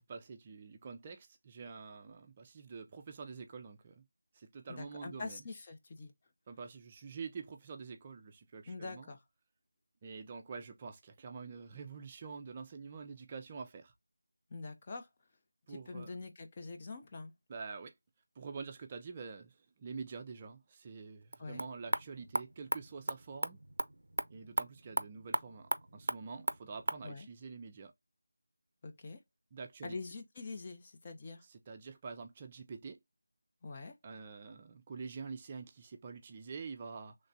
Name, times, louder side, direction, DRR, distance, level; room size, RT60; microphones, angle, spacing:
voice 1, 0.0-4.0 4.3-5.4 6.5-9.1 10.0-13.9 15.7-16.1 17.5-17.9 18.4-23.6 24.3-27.9 29.5-30.0 31.4-33.0 34.0-37.2, right 5 dB, 20° right, 0.4 m, -46 dB
voice 2, 4.7-6.1 8.7-9.2 14.5-15.1 15.7-17.3 21.4-21.6 27.0-27.3 28.8-29.2 29.8-31.4 33.6-34.0, left 3 dB, 25° left, 0.6 m, -44 dB
sound 1, 21.2-27.1, right 1 dB, 80° right, 0.4 m, -38 dB
3.2 x 3.2 x 2.6 m
figure-of-eight pair, 170°, 0 cm